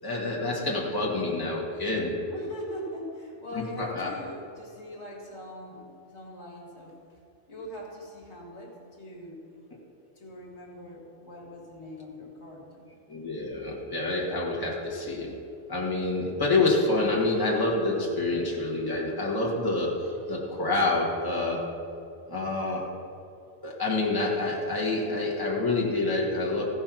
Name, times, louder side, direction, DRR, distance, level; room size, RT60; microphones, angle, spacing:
voice 1, 0.0-2.2 3.5-4.1 13.1-15.3 15.7-21.7 22.3-22.9 23.6-26.6, left 2 dB, 20° left, -3 dB, 1.5 m, -27 dB
voice 2, 2.3-7.0 7.5-9.5 10.2-12.9, equal, 65° left, -1 dB, 2.1 m, -41 dB
15.0 x 5.5 x 6.0 m, 2.7 s
omnidirectional pair, 1.2 m